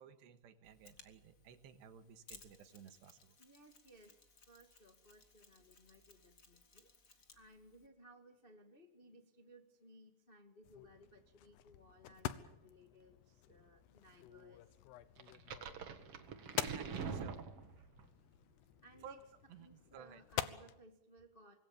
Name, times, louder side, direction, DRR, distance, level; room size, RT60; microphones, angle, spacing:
voice 1, 0.0-3.4 16.8-17.4 19.0-20.2, right 7 dB, 85° right, 9 dB, 3.7 m, -56 dB
Mechanisms, 0.6-7.9, left 4 dB, 35° left, 1.3 m, -63 dB
voice 2, 3.4-14.7 18.8-19.2 19.6-21.5, equal, 50° left, 3 dB, 0.6 m, -62 dB
sound 1, 10.6-20.7, left 13 dB, 80° left, 3.1 m, -47 dB
sound 2, 15.2-18.1, right 6 dB, 50° right, 1.9 m, -44 dB
25.5 x 21.5 x 7.2 m, 0.89 s
omnidirectional pair, 4.8 m